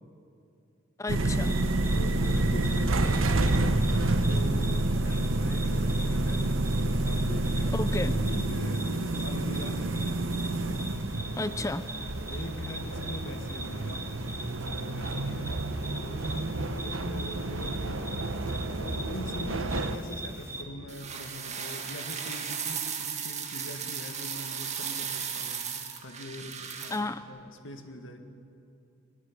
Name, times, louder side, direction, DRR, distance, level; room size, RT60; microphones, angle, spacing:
voice 1, 1.0-1.6 7.7-8.1 11.4-11.8 26.9-27.2, left 2 dB, 15° left, 13 dB, 0.5 m, -32 dB
sound 1, 1.1-20.0, right 2 dB, 80° right, 1.1 m, -29 dB
sound 2, 1.4-20.6, right 1 dB, 15° right, 1.9 m, -42 dB
voice 2, 1.9-6.4 6.8-10.0 11.4-11.8 12.3-14.1 14.7-15.6 15.8-18.2 18.8-27.0 27.3-28.2, left 1 dB, 70° left, 5 dB, 2.0 m, -42 dB
sound 3, 20.9-27.0, right 7 dB, 35° right, 2.0 m, -36 dB
21.5 x 20.0 x 7.6 m, 2.6 s
head